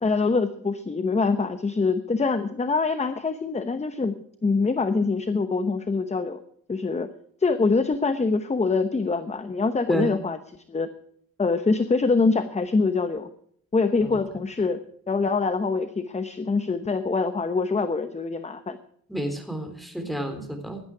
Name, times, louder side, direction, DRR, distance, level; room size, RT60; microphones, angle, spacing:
voice 1, 0.0-6.4 6.7-7.1 7.4-10.4 10.7-10.9 11.4-13.3 13.7-14.8 15.1-18.8, left 4 dB, 20° left, 10 dB, 0.9 m, -24 dB
voice 2, 19.1-20.8, equal, ahead, 6 dB, 3.5 m, -30 dB
16.5 x 12.0 x 4.8 m, 0.64 s
cardioid pair, 125°, 35 cm